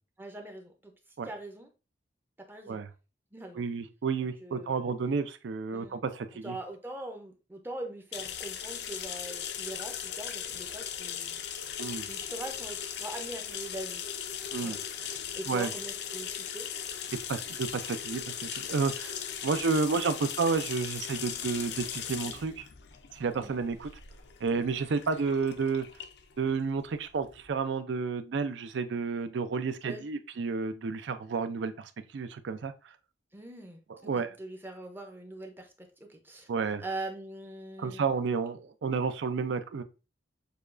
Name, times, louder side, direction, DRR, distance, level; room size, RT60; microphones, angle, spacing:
voice 1, 0.2-0.9 1.2-1.7 2.4-2.8 3.3-3.6 4.4-4.9 5.7-6.0 6.4-11.4 11.9-14.0 14.6-14.8 15.3-16.7 23.3-23.6 29.8-30.0 33.3-36.5 36.8-38.0, right 1 dB, 10° right, 4 dB, 0.5 m, -42 dB
voice 2, 3.6-6.6 11.8-12.1 14.5-14.8 15.5-15.7 17.3-18.2 18.5-19.2 19.4-22.7 23.1-23.9 24.4-25.9 26.4-32.7 33.9-34.3 36.5-36.8 37.8-39.8, right 5 dB, 75° right, 10 dB, 0.4 m, -31 dB
sound 1, 8.1-27.5, left 8 dB, 65° left, 0.4 m, -38 dB
6.7 x 2.3 x 2.4 m, 0.31 s
head